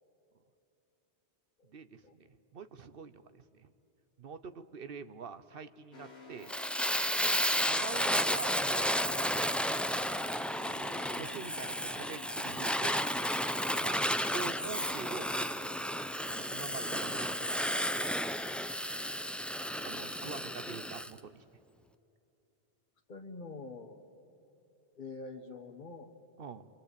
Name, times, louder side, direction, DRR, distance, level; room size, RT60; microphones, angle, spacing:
voice 1, 1.7-3.7 4.2-6.6 7.7-9.0 9.7-10.1 10.7-13.1 13.8-14.1 14.3-15.7 16.3-17.7 19.8-21.4 26.4-26.7, right 5 dB, 55° right, 12 dB, 1.0 m, -45 dB
sound 1, 5.9-16.5, left 4 dB, 65° left, 2.7 m, -52 dB
Fire, 6.5-21.1, equal, ahead, 0.3 m, -32 dB
voice 2, 23.1-24.1 24.9-26.2, left 3 dB, 45° left, 5 dB, 1.5 m, -46 dB
26.5 x 25.0 x 8.4 m, 2.9 s
omnidirectional pair, 1.2 m